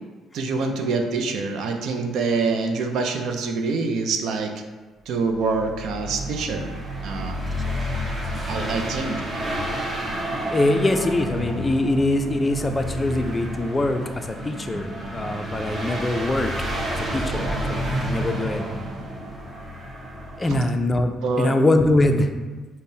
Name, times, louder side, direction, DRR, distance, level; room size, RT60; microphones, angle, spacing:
voice 1, 0.3-4.5 5.1-6.7 7.0-7.4 8.5-9.2 20.5-20.6 21.2-21.5, right 4 dB, 70° right, 4 dB, 0.4 m, -25 dB
sound 1, 5.3-20.5, equal, 35° right, 0.8 m, -30 dB
voice 2, 10.5-16.5 16.9-18.6 20.4-22.3, left 2 dB, 20° left, 6 dB, 0.3 m, -23 dB
5.3 x 2.1 x 2.7 m, 1.3 s
cardioid pair, 100°, 0 cm